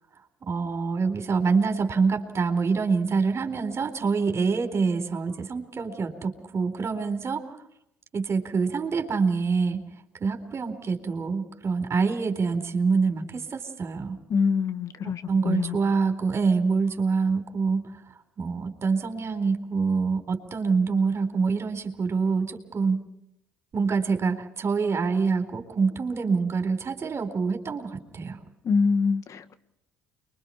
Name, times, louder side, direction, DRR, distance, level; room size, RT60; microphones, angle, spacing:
voice 1, 0.4-7.4 8.1-9.8 10.2-14.2 15.0-17.9 18.4-23.0 23.7-28.4, right 4 dB, 40° right, 6 dB, 4.2 m, -26 dB
voice 2, 14.3-15.8 28.6-29.5, left 5 dB, 50° left, 11 dB, 1.8 m, -25 dB
30.0 x 23.5 x 4.4 m, 0.81 s
hypercardioid pair, 60°, 7 cm